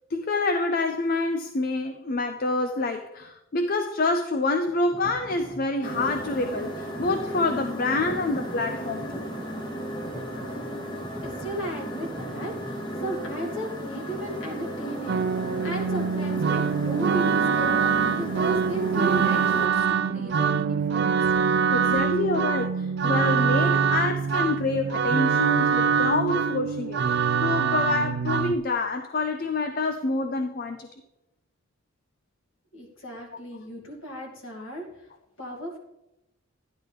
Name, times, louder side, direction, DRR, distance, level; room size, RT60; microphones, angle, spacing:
voice 1, 0.1-9.3 21.7-27.0 27.4-30.9, left 3 dB, 40° left, 7 dB, 0.5 m, -27 dB
sound 1, 4.7-12.8, right 1 dB, ahead, 1.4 m, -43 dB
sound 2, 5.8-19.7, right 1 dB, 20° left, 1.0 m, -35 dB
voice 2, 11.2-21.3 32.7-35.1 35.4-35.8, equal, 60° left, -1 dB, 2.4 m, -35 dB
sound 3, 15.1-28.6, right 6 dB, 50° right, 0.4 m, -24 dB
12.0 x 10.5 x 3.4 m, 0.91 s
head